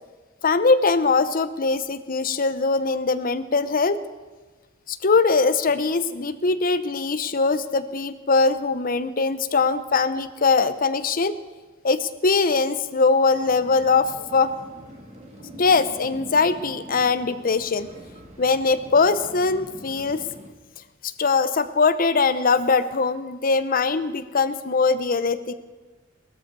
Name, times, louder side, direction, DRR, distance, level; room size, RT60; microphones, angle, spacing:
voice 1, 0.4-4.0 4.9-11.4 11.8-14.5 15.6-17.9 18.4-20.2 21.2-25.5, left 4 dB, 45° left, 12 dB, 0.7 m, -21 dB
sound 1, 13.3-20.5, equal, 35° right, 2.0 m, -44 dB
18.0 x 13.5 x 4.7 m, 1.3 s
head